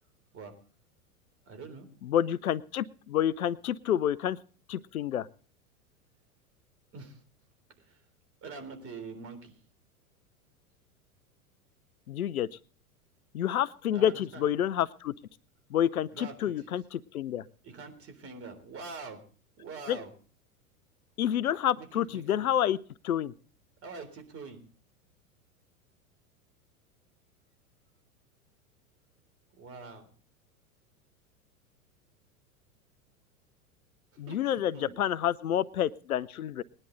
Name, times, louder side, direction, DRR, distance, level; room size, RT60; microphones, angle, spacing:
voice 1, 1.5-1.9 6.9-7.2 7.9-8.0 8.4-9.5 13.9-14.4 16.1-16.3 17.6-19.2 19.6-20.1 21.8-21.9 22.1-22.5 23.8-24.6 29.6-30.1 34.3-34.4 34.7-34.9, right 4 dB, 30° right, 7 dB, 3.7 m, -44 dB
voice 2, 2.0-4.4 4.7-5.3 12.1-12.5 13.3-15.1 15.7-17.4 19.9-20.0 21.2-22.8 23.0-23.3 34.2-36.6, left 10 dB, 75° left, 20 dB, 0.7 m, -29 dB
20.0 x 11.0 x 3.9 m, 0.41 s
figure-of-eight pair, 90°, 44 cm